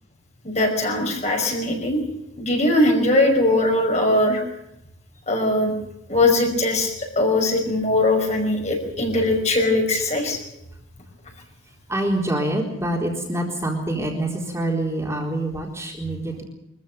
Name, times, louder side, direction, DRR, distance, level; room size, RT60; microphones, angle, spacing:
voice 1, 0.4-2.0 2.4-4.4 5.3-5.7 6.1-10.4, left 2 dB, 35° left, 3 dB, 5.4 m, -20 dB
voice 2, 11.9-16.4, right 1 dB, 15° right, 0 dB, 4.1 m, -26 dB
24.5 x 15.0 x 9.3 m, 0.81 s
head